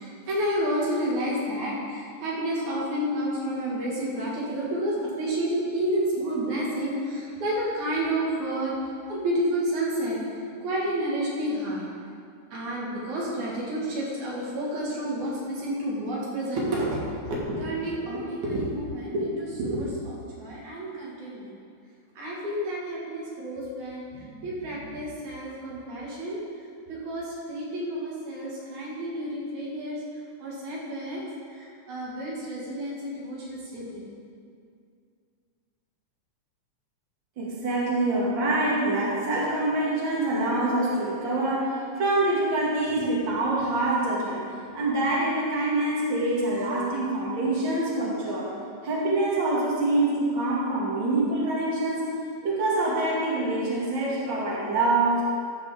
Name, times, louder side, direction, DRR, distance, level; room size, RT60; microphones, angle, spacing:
voice 1, 0.0-8.7 9.1-10.2 10.6-11.8 12.5-21.6 22.2-26.4 26.9-30.0 30.4-31.2 31.5-34.0, right 1 dB, 75° right, -5 dB, 3.3 m, -30 dB
voice 2, 37.4-44.4 44.7-48.5 48.8-52.1 52.4-55.2, right 2 dB, 40° right, -6 dB, 2.8 m, -25 dB
14.0 x 9.6 x 3.7 m, 2.3 s
omnidirectional pair, 3.4 m